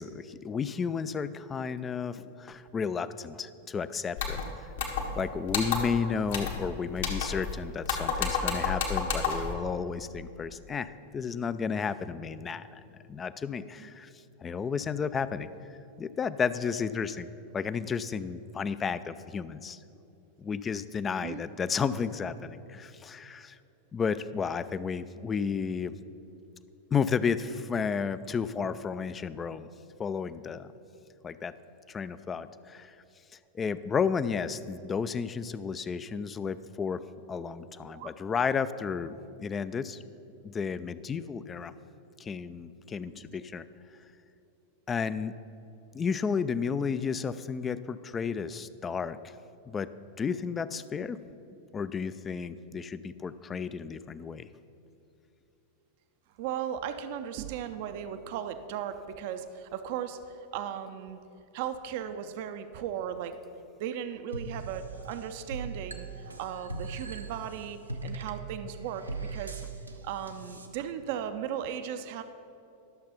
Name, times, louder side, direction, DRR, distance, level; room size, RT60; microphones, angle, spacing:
voice 1, 0.0-4.4 5.2-12.8 13.1-14.1 14.4-15.5 16.0-17.3 17.5-19.8 20.4-23.6 23.9-25.9 26.9-29.7 30.0-30.7 31.2-31.5 31.9-33.0 33.5-37.0 37.3-40.0 40.4-41.7 42.2-43.7 44.9-45.3 45.9-49.2 49.7-49.9 50.2-51.2 51.7-54.5, left 6 dB, 20° left, 14 dB, 0.3 m, -32 dB
sound 1, 4.2-4.4 4.8-5.2 5.5-6.0 6.3-6.6 7.0-7.5 7.8-9.5, left 5 dB, 60° left, 1.4 m, -30 dB
voice 2, 21.1-21.4 37.9-38.1 43.1-43.4 56.4-60.2 60.5-61.2 61.5-63.4 63.8-66.1 66.4-69.0 69.3-69.6 70.0-72.2, right 9 dB, 50° right, 9 dB, 0.5 m, -36 dB
sound 2, 64.3-70.7, right 3 dB, 80° right, 0.8 m, -40 dB
11.5 x 6.8 x 5.6 m, 2.8 s
figure-of-eight pair, 90°, 0 cm